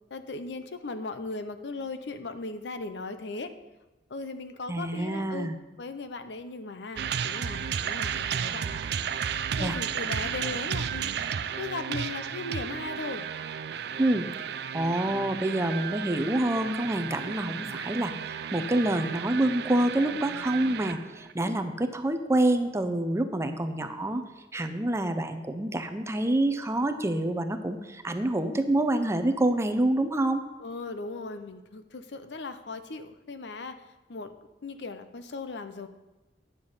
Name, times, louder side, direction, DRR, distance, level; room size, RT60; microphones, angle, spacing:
voice 1, 0.1-3.5 4.1-5.5 5.8-8.8 9.6-11.1 11.6-13.3 21.4-21.7 30.6-33.8 34.1-35.9, left 3 dB, 75° left, 10 dB, 0.7 m, -38 dB
voice 2, 4.7-5.6 9.6-9.8 14.0-14.3 14.7-24.2 24.5-30.4, right 1 dB, 15° right, 7 dB, 0.6 m, -27 dB
sound 1, 7.0-21.3, right 7 dB, 65° right, 0.4 m, -33 dB
9.7 x 6.7 x 5.6 m, 1.1 s
head